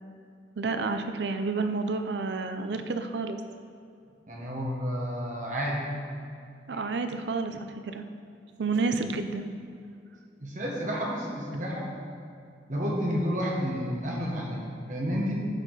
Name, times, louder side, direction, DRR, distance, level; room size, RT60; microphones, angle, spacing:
voice 1, 0.6-3.4 6.7-8.0 8.6-9.5, right 3 dB, 80° right, 8 dB, 0.5 m, -30 dB
voice 2, 4.3-5.9 6.7-6.8 10.4-11.9 12.7-15.3, equal, 45° right, -2 dB, 1.4 m, -31 dB
11.5 x 4.7 x 4.0 m, 2.4 s
head